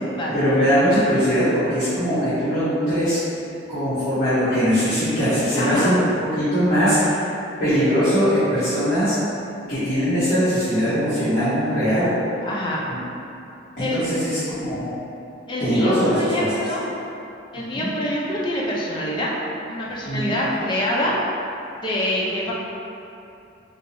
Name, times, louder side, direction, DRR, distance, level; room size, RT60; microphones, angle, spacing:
voice 1, 0.3-3.2 3.7-7.1 7.6-9.1 9.7-12.1 12.9-13.0 13.8-14.9 15.6-16.5 17.7-17.9 20.0-20.3, equal, 45° left, -17 dB, 1.3 m, -21 dB
voice 2, 5.6-5.9 12.4-12.8 13.8-14.2 15.5-16.8 17.5-19.3 19.7-21.1 21.8-22.5, left 1 dB, 25° left, -5 dB, 0.4 m, -25 dB
4.6 x 2.0 x 3.0 m, 2.8 s
head